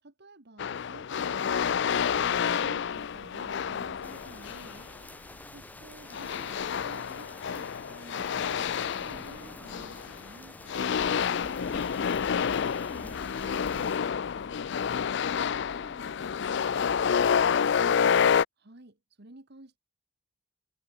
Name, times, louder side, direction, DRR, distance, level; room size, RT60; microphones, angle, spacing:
voice 1, 0.0-5.2 5.5-10.6 18.6-19.8, right 1 dB, 55° right, 1.8 m, -52 dB
sound 1, 0.6-4.8 6.1-10.3 10.7-18.4, left 7 dB, 60° left, 0.4 m, -28 dB
sound 2, 1.5-6.4, left 1 dB, 85° left, 5.9 m, -56 dB
sound 3, 4.0-14.0, left 1 dB, 10° left, 0.6 m, -47 dB
voice 2, 5.4-5.6, equal, 30° left, 4.4 m, -53 dB
head